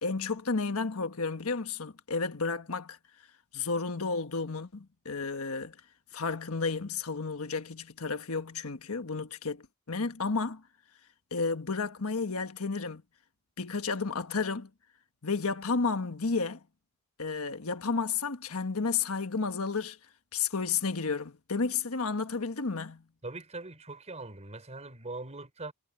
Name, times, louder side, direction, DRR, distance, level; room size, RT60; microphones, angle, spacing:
voice 1, 0.0-3.0 3.5-5.8 6.1-10.6 11.3-13.0 13.6-14.7 15.2-16.6 17.2-20.0 20.3-23.0, left 4 dB, 80° left, 1.4 m, -32 dB
voice 2, 23.2-25.7, right 2 dB, 30° right, 4.8 m, -41 dB
head